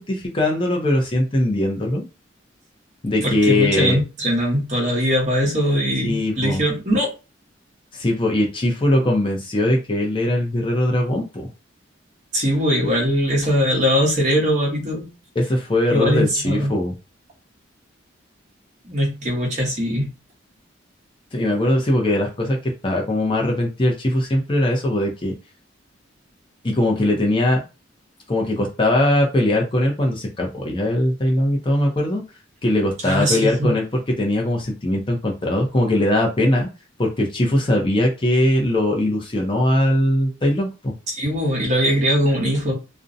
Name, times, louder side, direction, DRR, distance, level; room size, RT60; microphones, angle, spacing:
voice 1, 0.0-2.1 3.0-4.0 6.0-6.6 7.9-11.5 15.3-16.9 21.3-25.3 26.6-27.6 28.3-32.2 32.6-33.8 34.2-36.7 37.0-40.9, left 1 dB, 25° left, 0 dB, 0.5 m, -20 dB
voice 2, 3.2-7.1 12.3-15.1 15.9-16.7 18.8-20.1 33.0-33.7 41.1-42.7, equal, 35° right, -2 dB, 0.9 m, -21 dB
2.5 x 2.1 x 2.5 m, 0.30 s
head